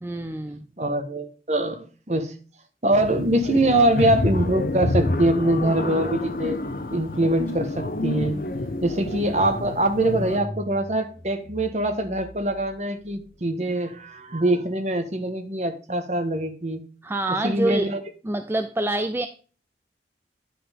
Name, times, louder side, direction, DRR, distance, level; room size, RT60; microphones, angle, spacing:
voice 1, 0.0-0.7 17.0-17.9 18.2-19.3, right 1 dB, 15° right, 7 dB, 0.4 m, -26 dB
voice 2, 0.8-2.3 2.8-6.6 6.9-8.3 8.8-16.8 17.4-18.0, right 1 dB, 40° right, 7 dB, 1.3 m, -23 dB
sound 1, 2.9-10.4, left 2 dB, 50° left, 0.9 m, -28 dB
Car / Engine starting, 7.5-7.6 7.9-13.1, equal, 10° left, 3.1 m, -40 dB
9.9 x 5.7 x 3.5 m, 0.38 s
head